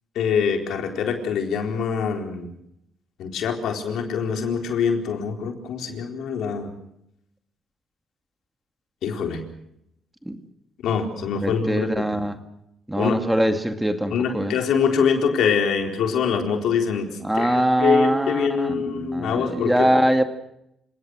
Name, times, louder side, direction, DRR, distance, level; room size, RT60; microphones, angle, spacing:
voice 1, 0.2-2.5 3.2-6.7 9.0-9.4 10.8-12.2 13.0-13.2 14.1-19.9, left 6 dB, 80° left, 4 dB, 4.2 m, -24 dB
voice 2, 11.4-12.4 12.9-14.6 17.2-20.2, right 1 dB, 5° right, 7 dB, 2.2 m, -22 dB
29.5 x 18.5 x 6.3 m, 0.79 s
cardioid pair, 90°, 0 cm